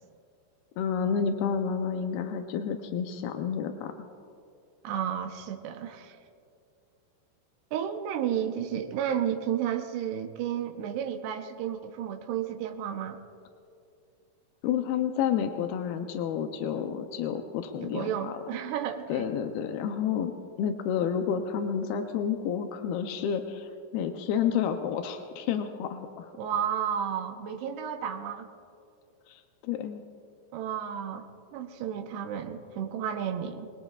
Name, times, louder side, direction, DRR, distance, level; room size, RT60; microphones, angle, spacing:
voice 1, 0.8-3.9 14.6-18.4 19.1-20.3 20.6-26.3 29.3-30.0, left 7 dB, 85° left, 5 dB, 2.1 m, -30 dB
voice 2, 4.8-6.2 7.7-13.2 17.8-19.3 26.4-28.5 30.5-31.3 31.5-33.7, right 9 dB, 75° right, 4 dB, 2.7 m, -32 dB
25.0 x 20.5 x 2.4 m, 2.5 s
omnidirectional pair, 5.2 m